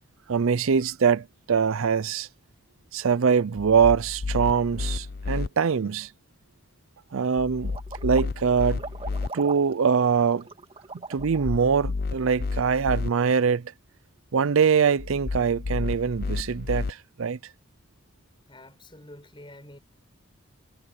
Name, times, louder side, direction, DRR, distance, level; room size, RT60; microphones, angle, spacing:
voice 1, 0.3-2.3 2.9-6.1 7.1-7.8 8.0-8.8 9.3-10.4 11.1-13.7 14.3-17.4, right 6 dB, 75° right, 0.5 m, -23 dB
sound 1, 3.6-5.5 7.4-9.3 11.2-13.1 15.0-16.9, left 3 dB, 45° left, 0.5 m, -31 dB
sound 2, 7.7-11.6, right 3 dB, 25° right, 1.8 m, -40 dB
voice 2, 18.5-19.8, left 1 dB, 25° left, 6.1 m, -47 dB
head